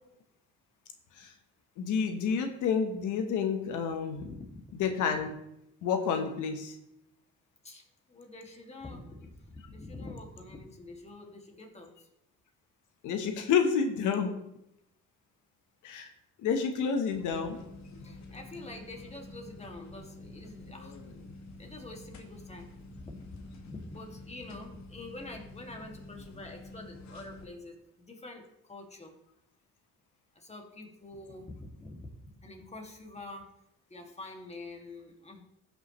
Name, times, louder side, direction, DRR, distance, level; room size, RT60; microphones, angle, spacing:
voice 1, 1.8-4.2 4.8-5.4 5.8-6.8 13.0-14.3 15.8-16.1 16.4-17.6, left 6 dB, 85° left, 6 dB, 1.1 m, -29 dB
voice 2, 4.2-4.6 7.6-12.1 18.0-21.0 21.6-29.1 30.4-33.5 33.9-35.4, left 2 dB, 20° left, 2 dB, 2.1 m, -46 dB
sound 1, 17.1-27.5, left 2 dB, 65° left, 1.6 m, -48 dB
15.5 x 5.8 x 3.1 m, 0.81 s
cardioid pair, 90°, 30 cm